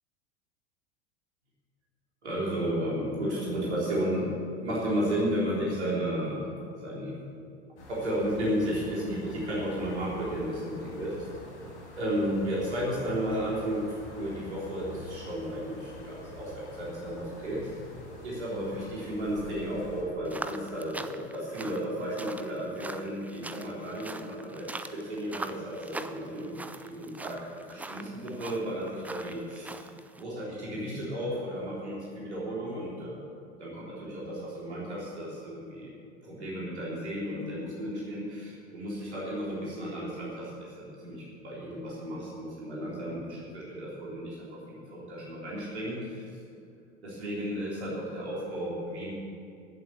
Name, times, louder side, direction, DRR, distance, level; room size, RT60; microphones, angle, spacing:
voice 1, 2.2-4.4 4.6-6.5 6.8-7.2 7.9-11.3 12.0-13.9 14.1-17.7 18.2-27.4 27.7-29.8 30.1-33.2 33.6-35.9 36.2-40.5 40.8-46.2 47.0-49.1, equal, 75° right, -6 dB, 3.9 m, -33 dB
sound 1, 7.8-20.0, left 2 dB, 80° left, 4.3 m, -47 dB
sound 2, 20.2-30.2, right 2 dB, 5° right, 0.4 m, -43 dB
16.5 x 7.8 x 7.1 m, 2.4 s
figure-of-eight pair, 85°, 34 cm